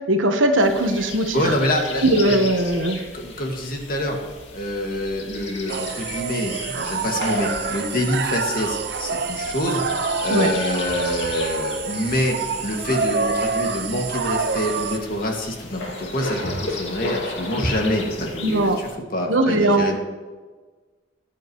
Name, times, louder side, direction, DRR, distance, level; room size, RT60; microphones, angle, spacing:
voice 1, 0.1-1.4 2.0-3.0 10.3-10.5 18.4-18.8 19.3-19.9, right 1 dB, 80° right, 5 dB, 1.3 m, -19 dB
sound 1, 0.6-18.9, left 2 dB, 65° left, 2.5 m, -35 dB
voice 2, 1.3-2.4 3.1-4.2 4.5-9.8 10.2-20.0, left 1 dB, 45° left, 1 dB, 2.1 m, -26 dB
sound 2, 5.7-15.0, right 4 dB, 55° right, 0.7 m, -27 dB
19.5 x 9.1 x 3.2 m, 1.4 s
head